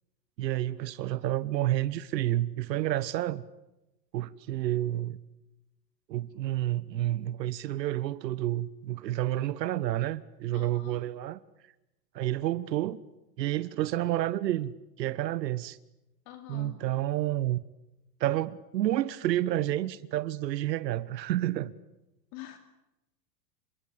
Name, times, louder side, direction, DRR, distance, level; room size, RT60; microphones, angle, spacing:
voice 1, 0.4-3.4 4.1-5.2 6.1-11.4 12.1-13.0 13.4-15.8 16.5-17.6 18.2-21.7, right 14 dB, 80° right, 1.3 m, -30 dB
voice 2, 10.5-11.0 16.3-16.8 22.3-22.6, left 13 dB, 50° left, 2.7 m, -45 dB
27.5 x 25.0 x 8.5 m
supercardioid pair, 135°, 50 cm